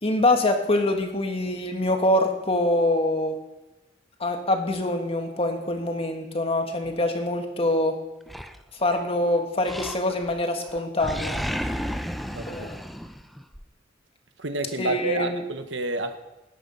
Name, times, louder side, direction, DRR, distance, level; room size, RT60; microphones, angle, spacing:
voice 1, 0.0-3.3 4.2-8.0 8.8-11.4 12.5-12.8 14.8-15.4, left 1 dB, 30° left, 5 dB, 1.8 m, -24 dB
Animal, 8.3-9.1 9.6-10.4 10.7-13.6, equal, ahead, 0.7 m, -33 dB
voice 2, 12.3-12.7 14.4-16.2, right 3 dB, 85° right, 8 dB, 1.3 m, -29 dB
18.5 x 10.0 x 5.6 m, 1.0 s
head